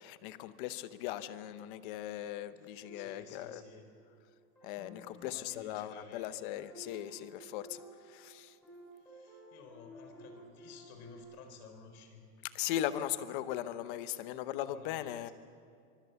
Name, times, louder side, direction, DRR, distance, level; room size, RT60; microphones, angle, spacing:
voice 1, 0.0-3.6 4.6-7.8 8.1-8.5 12.5-15.3, left 12 dB, 35° left, 13 dB, 0.8 m, -38 dB
voice 2, 2.6-3.9 5.2-6.3 8.9-12.2 14.7-15.3, left 6 dB, 65° left, 6 dB, 4.5 m, -54 dB
sound 1, 2.8-4.1 4.6-11.2, right 1 dB, 5° left, 7.9 m, -54 dB
24.0 x 23.5 x 7.0 m, 2.3 s
supercardioid pair, 175°, 48 cm